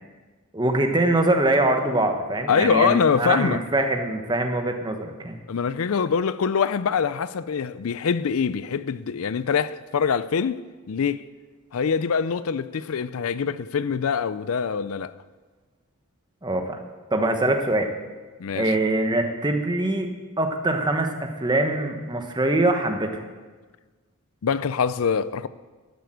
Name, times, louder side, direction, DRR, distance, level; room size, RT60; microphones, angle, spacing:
voice 1, 0.5-5.4 16.4-16.8 17.1-17.9 18.5-20.1 20.4-23.3, right 2 dB, 20° right, 1.2 m, -23 dB
voice 2, 2.5-3.6 5.5-10.6 10.9-11.3 11.7-15.1 18.4-18.8 24.4-25.5, left 6 dB, 75° left, 0.5 m, -24 dB
12.0 x 7.9 x 7.9 m
head